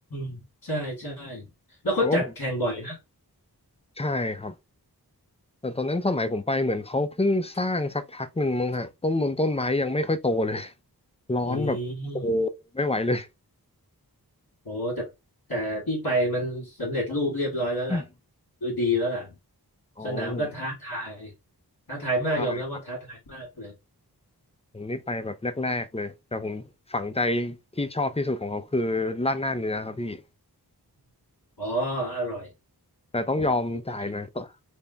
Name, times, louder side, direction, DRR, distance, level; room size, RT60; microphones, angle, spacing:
voice 1, 0.1-1.5 1.8-3.0 11.4-12.4 14.7-15.1 15.5-18.0 18.6-19.3 20.0-21.3 21.9-23.8 31.6-32.5 34.1-34.3, equal, 65° left, 1.9 m, -29 dB
voice 2, 4.0-4.5 5.6-10.7 11.3-11.8 12.1-12.5 12.7-13.3 17.9-18.0 20.0-20.5 22.3-22.6 24.7-26.6 26.9-30.2 33.1-34.5, left 2 dB, 15° left, 0.4 m, -27 dB
3.5 x 2.2 x 3.9 m
wide cardioid pair, 45°, 39 cm